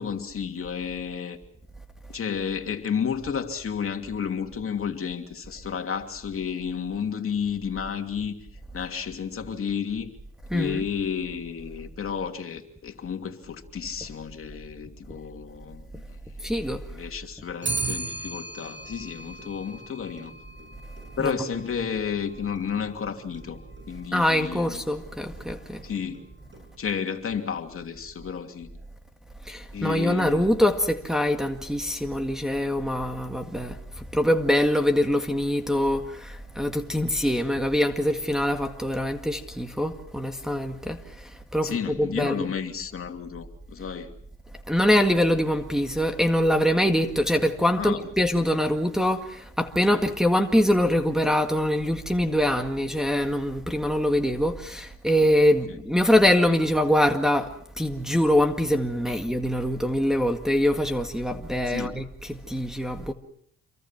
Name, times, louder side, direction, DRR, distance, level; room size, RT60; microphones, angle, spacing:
voice 1, 0.0-1.4 2.1-8.3 8.7-10.1 10.5-16.2 16.9-20.3 21.2-23.6 23.9-24.8 25.8-26.2 26.8-28.7 29.7-30.5 41.6-44.1 47.8-48.0 61.7-62.0, left 7 dB, 45° left, 2.9 m, -31 dB
voice 2, 10.5-10.8 16.4-16.8 21.2-21.3 24.1-25.8 29.5-42.5 44.7-63.1, equal, ahead, 1.9 m, -24 dB
Clock, 17.6-27.0, right 3 dB, 40° right, 6.3 m, -38 dB
28.5 x 23.0 x 6.0 m
cardioid pair, 90°, 30 cm